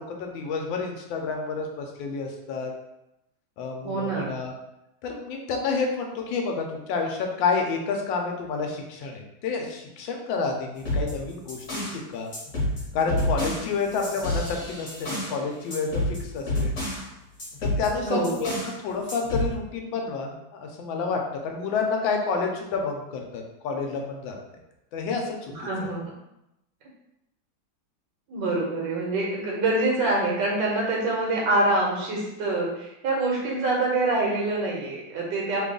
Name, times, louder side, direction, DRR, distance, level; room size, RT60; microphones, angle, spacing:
voice 1, 0.0-2.7 3.6-4.5 5.0-12.3 12.9-16.7 17.6-18.5 18.8-24.4 24.9-25.5 25.8-25.9, left 4 dB, 90° left, 2 dB, 1.4 m, -29 dB
voice 2, 3.8-4.4 18.0-18.5 25.5-26.1 28.3-35.7, right 2 dB, 70° right, -3 dB, 1.4 m, -25 dB
sound 1, 10.8-12.0 12.3-15.4 15.7-17.1 17.4-18.8 19.1-19.5, left 1 dB, 50° left, 1.4 m, -29 dB
3.4 x 2.3 x 3.7 m, 0.88 s
omnidirectional pair, 2.0 m